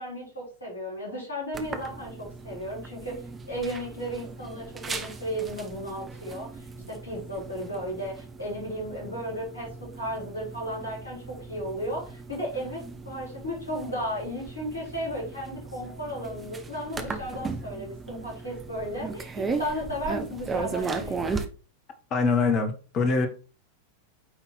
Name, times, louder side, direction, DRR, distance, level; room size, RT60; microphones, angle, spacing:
voice 1, 0.0-3.2 3.5-6.5 6.9-21.3, equal, 80° left, -4 dB, 4.8 m, -34 dB
sound 1, 1.5-21.4, right 4 dB, 20° right, 1.1 m, -37 dB
voice 2, 22.1-23.3, left 4 dB, 35° left, 6 dB, 1.7 m, -23 dB
9.1 x 4.0 x 4.4 m, 0.35 s
figure-of-eight pair, 90°, 0 cm